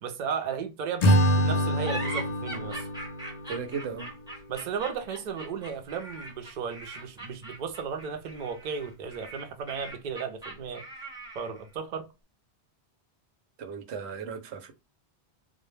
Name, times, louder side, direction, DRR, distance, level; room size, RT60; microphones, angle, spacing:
voice 1, 0.0-2.9 4.5-10.8 11.3-12.1, right 6 dB, 55° right, 0.6 m, -35 dB
Acoustic guitar / Strum, 1.0-4.3, equal, 55° left, 0.5 m, -26 dB
sound 1, 1.8-11.7, right 1 dB, 5° right, 0.7 m, -41 dB
voice 2, 3.5-4.1 13.6-14.7, right 6 dB, 90° right, 0.9 m, -36 dB
2.1 x 2.1 x 3.0 m
omnidirectional pair, 1.1 m